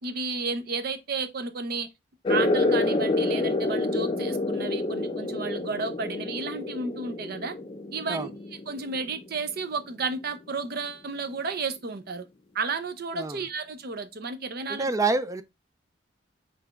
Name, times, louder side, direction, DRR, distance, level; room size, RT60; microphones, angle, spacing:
voice 1, 0.0-1.9 2.3-7.6 7.9-8.3 8.7-12.2 12.5-14.9, right 4 dB, 55° right, 0.6 m, -32 dB
sound 1, 2.2-9.4, left 2 dB, 30° left, 0.6 m, -28 dB
voice 2, 13.1-13.4 14.7-15.4, right 3 dB, 15° right, 0.3 m, -27 dB
5.6 x 3.4 x 2.4 m
head